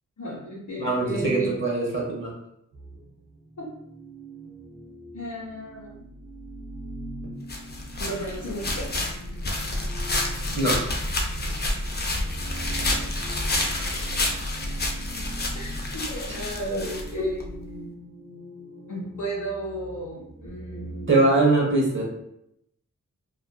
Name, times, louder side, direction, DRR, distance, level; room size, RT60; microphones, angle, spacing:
voice 1, 0.2-1.5 3.6-3.7 5.1-6.1 8.0-8.9 15.5-17.4 18.9-21.3, right 1 dB, 65° left, -6 dB, 0.7 m, -33 dB
voice 2, 0.8-2.3 10.5-10.8 13.5-13.7 21.1-22.0, right 2 dB, 40° right, -3 dB, 0.8 m, -22 dB
sound 1, 2.7-21.1, right 1 dB, 70° right, 0.8 m, -42 dB
sound 2, 7.5-17.5, left 2 dB, 35° left, 0.4 m, -29 dB
2.7 x 2.3 x 2.2 m, 0.77 s
wide cardioid pair, 95°, 32 cm